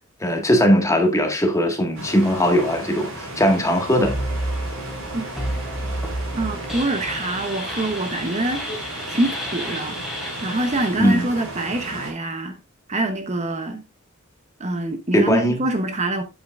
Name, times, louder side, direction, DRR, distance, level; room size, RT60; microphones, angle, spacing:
voice 1, 0.2-4.1 11.0-11.3 15.1-15.6, equal, 15° left, 1.7 m, -19 dB
sound 1, 1.9-12.1, right 1 dB, 80° right, 5.2 m, -35 dB
sound 2, 4.0-10.9, equal, ahead, 2.7 m, -30 dB
voice 2, 6.3-8.6 9.1-12.6 12.9-13.8 14.6-16.2, right 2 dB, 35° right, 0.9 m, -25 dB
8.6 x 8.5 x 2.5 m
head